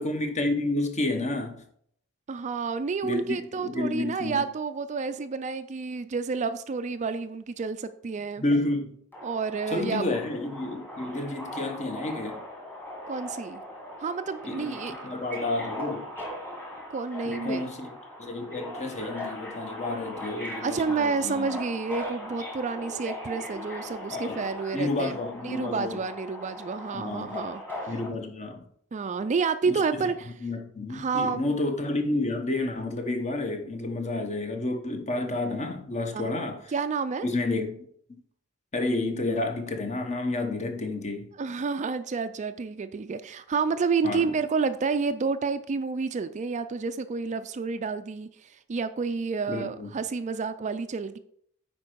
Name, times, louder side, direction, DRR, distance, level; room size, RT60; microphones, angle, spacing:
voice 1, 0.0-1.6 3.0-4.4 8.4-8.9 9.7-12.4 14.5-16.1 17.2-21.5 24.1-24.4 24.7-26.0 26.9-27.4 27.9-28.7 29.7-29.8 30.4-36.6 37.2-37.7 38.7-41.3 44.0-44.3 49.5-49.9, left 2 dB, 35° left, 1.0 m, -30 dB
voice 2, 2.3-8.4 9.2-10.0 13.1-13.6 14.0-14.9 16.9-17.6 20.6-25.2 25.4-27.9 28.9-30.3 30.9-31.4 36.1-36.3 36.7-37.3 41.4-51.2, right 4 dB, 35° right, 0.4 m, -30 dB
Subway metro underground, 9.1-28.1, left 1 dB, 10° left, 1.8 m, -39 dB
9.7 x 4.4 x 4.6 m
head